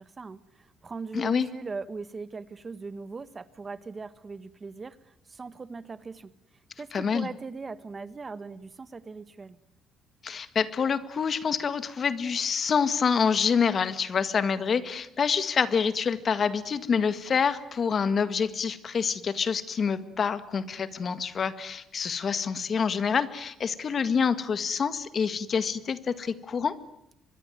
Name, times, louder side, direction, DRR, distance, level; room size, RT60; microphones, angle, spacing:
voice 1, 0.0-6.3 6.8-9.6, right 4 dB, 30° right, 15 dB, 1.3 m, -40 dB
voice 2, 1.1-1.5 6.9-7.3 10.2-26.8, left 6 dB, 45° left, 13 dB, 1.9 m, -27 dB
25.5 x 22.0 x 9.2 m, 0.80 s
cardioid pair, 105°, 0 cm